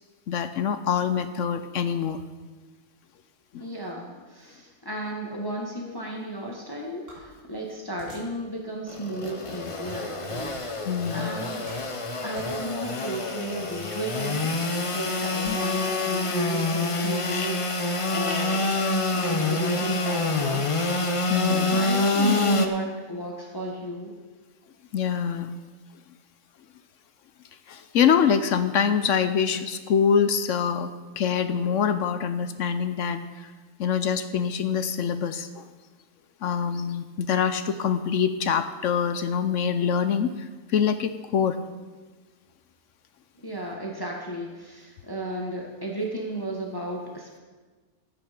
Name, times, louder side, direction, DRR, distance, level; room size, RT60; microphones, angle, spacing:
voice 1, 0.3-2.2 3.5-3.6 10.8-11.3 15.4-15.6 21.3-21.8 24.9-25.6 27.7-33.5 33.8-35.7 36.4-41.6, left 7 dB, 65° left, 10 dB, 0.9 m, -25 dB
voice 2, 3.6-11.7 12.2-18.7 19.1-20.8 21.5-24.1 43.4-47.4, right 1 dB, 15° left, -1 dB, 1.5 m, -34 dB
sound 1, 7.1-8.4 8.9-9.1 9.8-10.8 11.1-12.5, left 1 dB, 70° right, 4.4 m, -46 dB
Engine / Sawing, 8.9-22.7, left 2 dB, 30° left, 0.6 m, -26 dB
13.0 x 8.6 x 5.2 m, 1.3 s
omnidirectional pair, 1.6 m